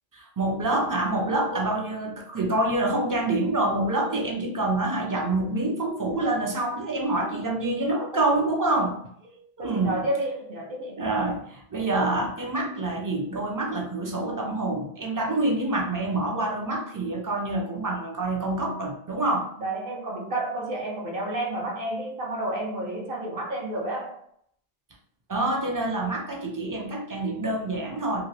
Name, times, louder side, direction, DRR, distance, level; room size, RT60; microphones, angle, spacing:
voice 1, 0.1-9.0 9.6-10.1 11.0-19.5 25.3-28.3, right 2 dB, 35° right, 1 dB, 0.3 m, -26 dB
voice 2, 9.6-11.3 19.6-24.1, right 1 dB, 60° right, -1 dB, 1.0 m, -30 dB
2.8 x 2.6 x 3.1 m, 0.68 s
omnidirectional pair, 1.1 m